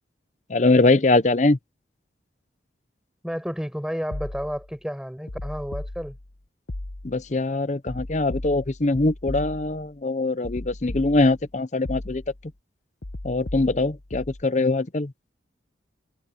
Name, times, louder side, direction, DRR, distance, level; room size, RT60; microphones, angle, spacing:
voice 1, 0.5-1.6 7.0-12.2 13.2-15.1, left 2 dB, 40° left, 0.7 m, -22 dB
voice 2, 3.2-6.2, equal, 5° right, 5.6 m, -31 dB
sound 1, 4.1-4.7 5.3-6.3 6.7-7.3 7.9-9.9 10.4-11.5 11.8-12.5 13.0-14.4, left 1 dB, 65° left, 1.1 m, -36 dB
head